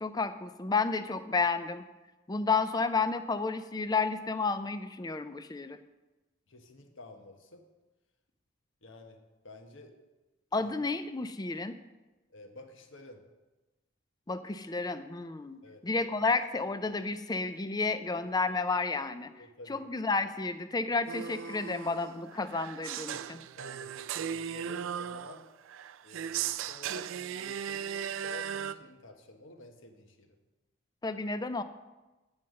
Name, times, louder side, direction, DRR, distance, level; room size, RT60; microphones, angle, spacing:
voice 1, 0.0-1.8 2.3-5.8 10.5-11.8 14.3-19.3 19.7-23.4 31.0-31.6, left 4 dB, 20° left, 11 dB, 0.4 m, -31 dB
voice 2, 6.5-7.6 8.8-9.9 10.6-10.7 12.3-13.2 15.6-15.8 19.4-19.9 23.6-25.5 26.0-30.4, left 1 dB, 65° left, 5 dB, 1.1 m, -50 dB
sound 1, 21.1-28.7, right 9 dB, 70° right, 0.3 m, -37 dB
9.6 x 5.5 x 6.3 m, 1.1 s
head